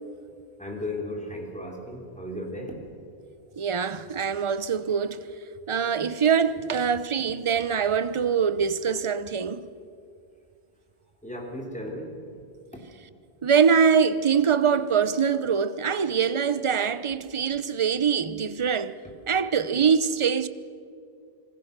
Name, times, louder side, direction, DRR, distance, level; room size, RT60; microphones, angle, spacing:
voice 1, 0.6-2.8 11.2-12.2, left 1 dB, 5° left, 3.4 m, -35 dB
voice 2, 3.6-5.2 5.7-9.7 13.4-19.0 19.3-20.5, right 6 dB, 35° right, 0.7 m, -23 dB
26.5 x 19.5 x 6.7 m
omnidirectional pair, 1.1 m